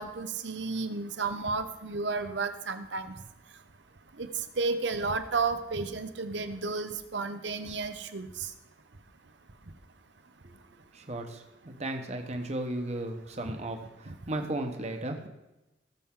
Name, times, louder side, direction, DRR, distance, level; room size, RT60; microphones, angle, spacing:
voice 1, 0.0-3.1 4.2-4.3 4.6-8.3 14.1-14.2, right 4 dB, 75° right, 10 dB, 0.9 m, -32 dB
voice 2, 10.9-15.3, right 1 dB, 35° right, 4 dB, 1.2 m, -35 dB
17.5 x 7.1 x 3.8 m, 0.98 s
head